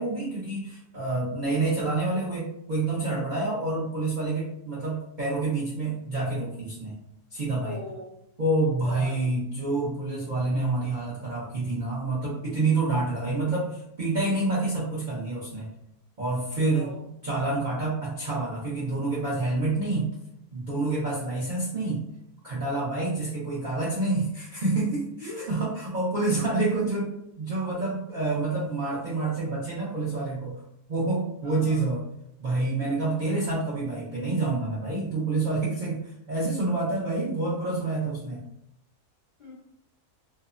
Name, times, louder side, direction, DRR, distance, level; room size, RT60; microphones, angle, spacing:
voice 1, 0.0-7.0 7.3-7.8 8.4-15.7 16.2-16.9 17.2-20.1 20.5-22.1 22.4-30.6 30.9-32.0 32.4-38.4, right 2 dB, 65° right, -7 dB, 0.4 m, -28 dB
voice 2, 7.6-8.1 8.8-9.3 16.5-17.0 25.2-25.5 26.2-26.3 31.4-31.8 39.4-39.5, left 1 dB, 50° left, -7 dB, 0.5 m, -40 dB
2.8 x 2.0 x 2.4 m, 0.78 s
omnidirectional pair, 1.6 m